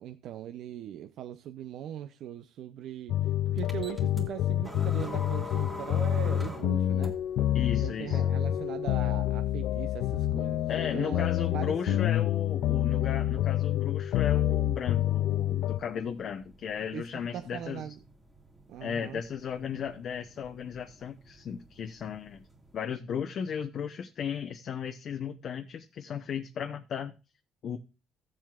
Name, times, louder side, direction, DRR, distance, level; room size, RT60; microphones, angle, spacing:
voice 1, 0.0-7.2 7.8-12.1 16.9-18.0 18.7-19.2, right 10 dB, 70° right, 0.5 m, -40 dB
sound 1, 3.1-15.8, left 12 dB, 70° left, 0.4 m, -28 dB
sound 2, 3.6-22.8, right 1 dB, 10° right, 2.0 m, -50 dB
voice 2, 7.5-8.2 10.7-17.9 18.8-22.4 22.7-27.1 27.6-27.8, left 7 dB, 45° left, 0.8 m, -35 dB
16.5 x 7.5 x 2.3 m
cardioid pair, 155°, 0 cm